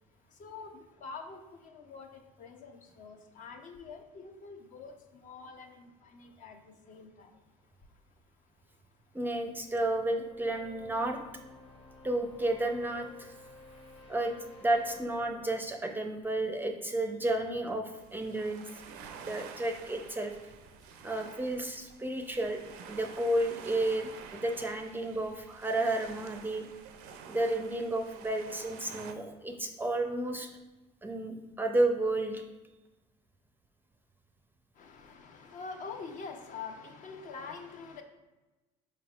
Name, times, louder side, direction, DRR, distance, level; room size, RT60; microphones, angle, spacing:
voice 1, 0.4-2.1 2.4-6.6 6.9-7.3 34.8-38.0, left 4 dB, 55° left, 0.6 m, -45 dB
sound 1, 9.1-16.9, left 2 dB, 35° left, 1.0 m, -54 dB
voice 2, 9.1-11.2 12.0-13.3 14.1-14.3 14.6-18.7 19.2-20.3 21.0-22.6 22.9-26.7 27.3-30.5 31.0-32.4, right 1 dB, 10° right, 0.4 m, -32 dB
sound 2, 17.9-29.1, right 6 dB, 75° right, 0.4 m, -49 dB
4.6 x 3.4 x 2.4 m
supercardioid pair, 80°, 16 cm